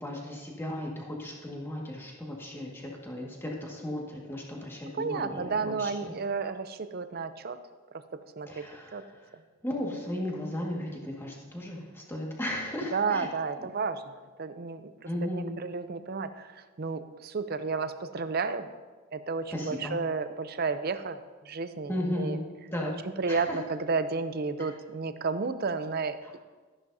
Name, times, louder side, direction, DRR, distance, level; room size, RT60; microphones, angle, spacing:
voice 1, 0.0-6.1 8.5-9.1 9.6-13.3 13.6-13.7 15.1-15.6 19.5-20.0 21.9-23.0 23.3-23.6 24.6-24.7 26.2-26.4, left 1 dB, 10° left, -2 dB, 1.7 m, -35 dB
voice 2, 4.9-7.6 8.4-8.7 8.9-9.0 12.9-14.0 14.4-16.5 16.8-18.7 19.1-21.2 21.5-22.4 23.2-26.4, right 4 dB, 50° right, 11 dB, 0.6 m, -32 dB
13.5 x 10.5 x 2.7 m, 1.4 s
head